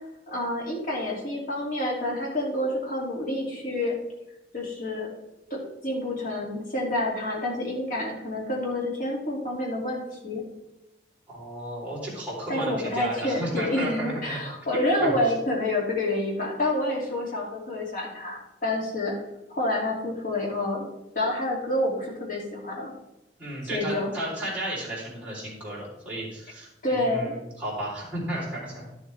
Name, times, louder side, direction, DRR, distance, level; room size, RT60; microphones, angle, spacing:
voice 1, 0.3-4.0 4.5-5.1 5.5-10.4 12.5-19.1 19.5-20.9 21.1-22.9 23.7-24.1 26.8-27.4, left 1 dB, 45° left, -2 dB, 2.7 m, -28 dB
voice 2, 11.3-14.4 14.7-15.1 23.4-28.9, right 1 dB, 10° right, -8 dB, 3.8 m, -33 dB
12.0 x 7.2 x 3.5 m, 0.94 s
head